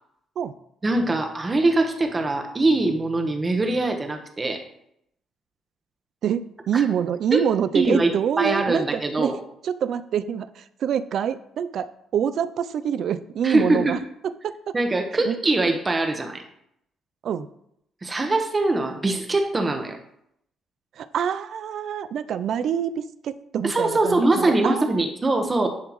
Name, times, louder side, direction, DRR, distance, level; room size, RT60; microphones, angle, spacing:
voice 1, 0.8-4.6 6.7-6.8 7.3-7.4 7.7-9.4 13.4-14.0 14.7-16.4 18.0-20.0 23.6-25.7, right 2 dB, 25° right, 5 dB, 1.1 m, -22 dB
voice 2, 6.2-9.4 9.6-11.9 12.1-14.0 14.2-14.8 15.3-15.4 17.2-17.5 21.0-25.0, right 8 dB, 70° right, 14 dB, 0.4 m, -26 dB
10.5 x 3.7 x 3.1 m, 0.75 s
cardioid pair, 90°, 0 cm